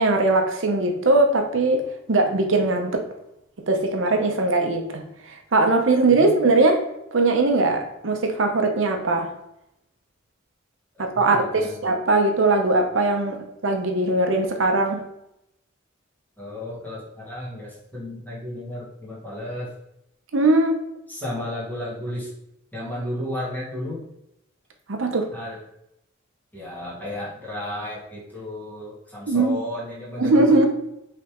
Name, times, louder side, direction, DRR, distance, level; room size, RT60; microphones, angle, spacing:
voice 1, 0.0-3.0 3.7-6.8 7.1-9.3 11.0-15.0 20.3-20.8 24.9-25.3 29.3-29.6 30.2-30.7, right 2 dB, 65° right, 4 dB, 0.7 m, -20 dB
voice 2, 10.9-11.8 16.4-19.7 21.1-22.3 22.7-24.0 25.3-25.6 26.5-30.7, left 1 dB, 10° left, -7 dB, 1.5 m, -33 dB
5.0 x 3.3 x 3.0 m, 0.82 s
head